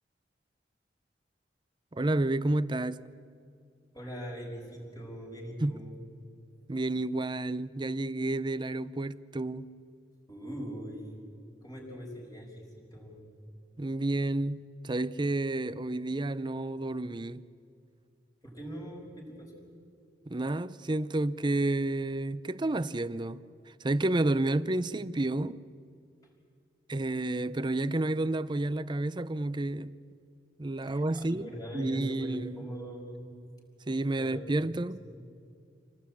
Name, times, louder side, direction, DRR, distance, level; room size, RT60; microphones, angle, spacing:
voice 1, 1.9-3.0 5.6-5.8 6.7-9.7 13.8-17.4 20.3-23.4 23.8-25.6 26.9-29.9 30.6-31.5 31.7-32.6 33.9-35.0, right 2 dB, 25° right, 0.6 m, -30 dB
voice 2, 3.9-6.0 10.3-11.2 11.6-13.3 18.4-19.7 30.9-33.4 34.2-35.3, equal, 20° left, 5.7 m, -42 dB
27.5 x 18.5 x 8.6 m
head